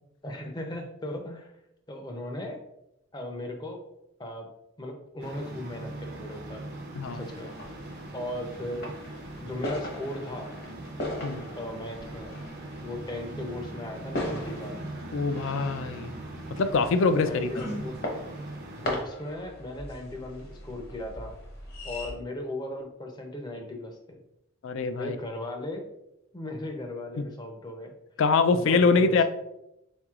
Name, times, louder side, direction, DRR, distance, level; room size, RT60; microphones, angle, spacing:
voice 1, 0.2-1.5 1.9-2.6 3.1-3.8 4.2-4.5 4.8-6.6 7.1-7.5 8.1-8.9 9.4-10.6 11.6-12.3 12.8-14.8 17.2-18.0 18.7-21.3 21.8-24.2 24.9-25.9 26.3-27.9 28.5-29.2, left 1 dB, 20° left, 3 dB, 0.5 m, -37 dB
sound 1, 5.2-19.0, right 1 dB, 50° right, 0.6 m, -41 dB
sound 2, 7.0-22.1, left 1 dB, 50° left, 0.9 m, -39 dB
voice 2, 15.1-16.2 16.6-17.5 24.6-25.2 27.2-27.3 28.2-29.2, left 4 dB, 70° left, 10 dB, 0.4 m, -24 dB
4.5 x 3.8 x 2.4 m, 0.83 s
head